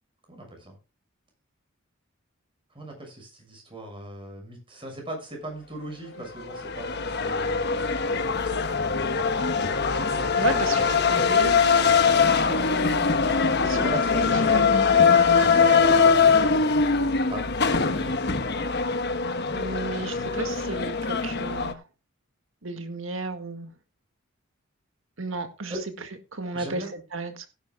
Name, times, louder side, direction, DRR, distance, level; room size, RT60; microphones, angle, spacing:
voice 1, 0.3-0.7 2.7-9.2 10.5-10.9 11.1-11.3 13.6-14.8 15.2-16.8 17.3-18.3 25.7-25.8 26.5-26.9, right 1 dB, 25° right, 2 dB, 6.6 m, -39 dB
sound 1, 6.4-21.7, left 5 dB, 55° left, 1.2 m, -22 dB
voice 2, 10.3-11.6 12.4-13.3 13.8-13.9 19.5-21.8 22.6-23.7 25.2-25.7 26.3-26.8 27.1-27.5, right 3 dB, 70° right, 7 dB, 1.9 m, -33 dB
17.5 x 10.5 x 2.3 m, 0.29 s
head